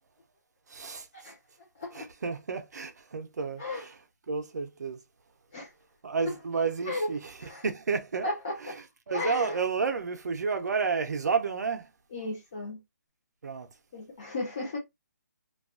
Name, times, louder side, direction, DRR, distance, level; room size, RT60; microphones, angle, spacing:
voice 1, 0.7-1.3 1.9-4.0 4.3-5.0 6.0-8.3 8.6-8.7 9.1-11.9 13.4-13.7, right 5 dB, 65° right, 0.5 m, -31 dB
voice 2, 8.2-8.8 9.1-9.6 12.1-12.8 13.9-14.8, left 2 dB, 20° left, 0.5 m, -34 dB
2.7 x 2.3 x 2.4 m
hypercardioid pair, 180°, 10 cm